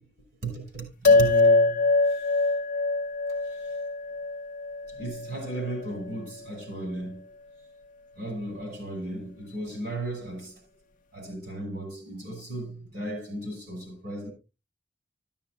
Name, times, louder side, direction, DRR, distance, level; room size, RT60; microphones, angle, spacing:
voice 1, 0.4-2.5 3.4-3.8 4.9-7.2 8.1-10.6 11.1-14.3, right 2 dB, 65° right, 6.0 m, -35 dB
sound 1, 1.0-5.7, left 3 dB, 45° left, 0.5 m, -23 dB
13.0 x 12.5 x 2.6 m
head